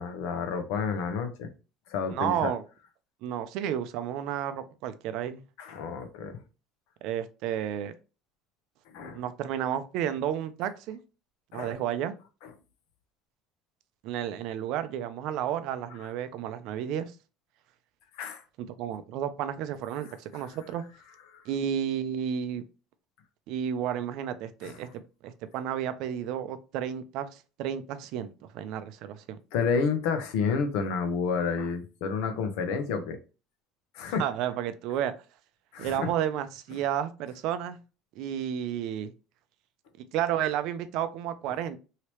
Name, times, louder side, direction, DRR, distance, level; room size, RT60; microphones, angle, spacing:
voice 1, 0.0-1.5 1.9-2.5 5.6-6.4 8.9-9.2 11.5-11.8 18.2-18.4 21.3-21.4 24.6-24.8 29.5-33.2 33.9-34.2 35.7-36.1, left 5 dB, 75° left, 0.7 m, -30 dB
voice 2, 2.1-2.6 3.2-5.4 7.0-7.9 9.1-11.0 11.5-12.1 14.0-17.1 18.6-20.8 21.5-22.6 23.5-29.4 34.2-35.1 35.8-37.8 38.2-39.1 40.1-41.8, right 10 dB, 60° right, 0.4 m, -32 dB
3.1 x 2.8 x 3.0 m
cardioid pair, 140°, 0 cm